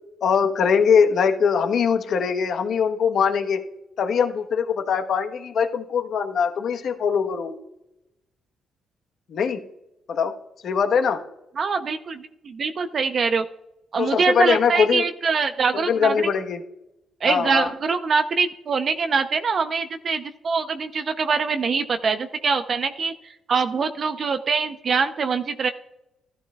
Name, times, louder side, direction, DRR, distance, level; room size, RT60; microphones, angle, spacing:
voice 1, 0.2-3.6 4.0-7.6 9.3-9.6 10.1-10.3 10.6-11.2 14.0-15.1 15.9-16.6 17.2-17.7, left 6 dB, 65° left, 6 dB, 1.1 m, -22 dB
voice 2, 11.6-13.4 13.9-16.2 17.2-23.1 23.5-25.7, right 5 dB, 50° right, 8 dB, 0.6 m, -24 dB
13.0 x 12.0 x 2.3 m, 0.87 s
cardioid pair, 90°, 0 cm